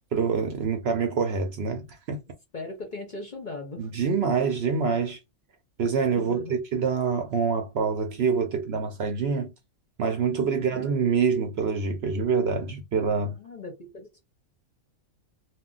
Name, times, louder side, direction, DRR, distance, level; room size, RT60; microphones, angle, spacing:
voice 1, 0.1-2.2 3.8-5.2 5.8-9.5 10.0-13.4, right 5 dB, 60° right, 0.7 m, -26 dB
voice 2, 2.5-3.9 6.2-6.6 10.3-10.8 13.1-14.2, left 3 dB, 45° left, 0.7 m, -39 dB
2.3 x 2.2 x 3.7 m
omnidirectional pair, 1.4 m